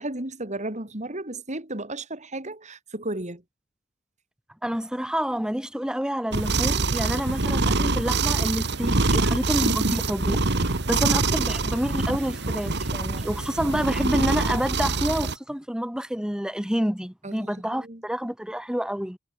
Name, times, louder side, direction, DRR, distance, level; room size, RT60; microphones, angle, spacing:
voice 1, 0.0-3.4 17.2-18.0, right 2 dB, 35° right, 3.5 m, -34 dB
voice 2, 4.6-19.2, equal, 5° right, 0.9 m, -28 dB
sound 1, 6.3-15.4, right 3 dB, 60° right, 1.7 m, -25 dB
head